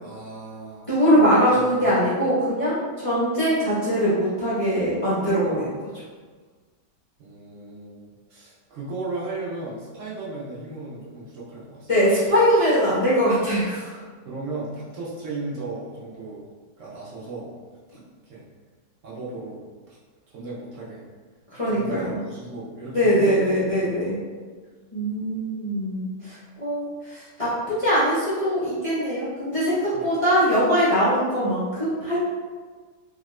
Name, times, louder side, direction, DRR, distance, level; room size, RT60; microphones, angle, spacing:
voice 1, 0.0-0.9 1.7-1.9 7.2-8.0 8.3-11.9 14.2-16.4 16.8-17.5 17.9-18.4 19.0-20.0 20.3-21.0 21.6-23.5 23.8-24.1 29.9-30.0, right 2 dB, 65° right, -7 dB, 0.8 m, -36 dB
voice 2, 0.9-5.7 11.9-14.0 21.5-22.2 22.9-24.2 24.9-32.2, equal, 60° left, -11 dB, 0.3 m, -22 dB
2.8 x 2.4 x 3.0 m, 1.5 s
omnidirectional pair, 1.9 m